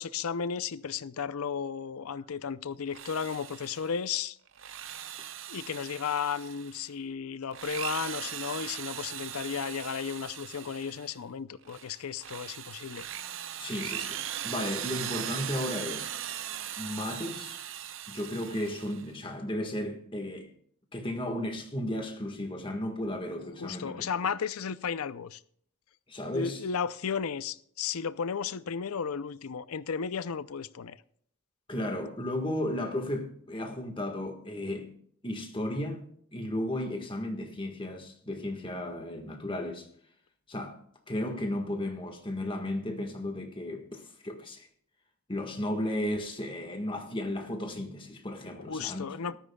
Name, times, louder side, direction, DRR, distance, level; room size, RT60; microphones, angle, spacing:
voice 1, 0.0-4.4 5.5-13.1 23.6-25.4 26.3-31.0 48.6-49.4, left 6 dB, 80° left, 0.5 m, -34 dB
Drill, 2.8-4.0 4.5-6.9 7.4-11.1 11.6-19.1, right 10 dB, 60° right, 0.6 m, -39 dB
voice 2, 13.6-16.1 16.8-17.6 18.1-20.5 20.9-24.1 26.1-26.6 31.7-34.9 35.2-36.0 36.3-39.9 40.5-40.8 41.1-44.7 45.3-49.0, left 1 dB, 20° left, 1.5 m, -34 dB
18.0 x 13.5 x 2.3 m
head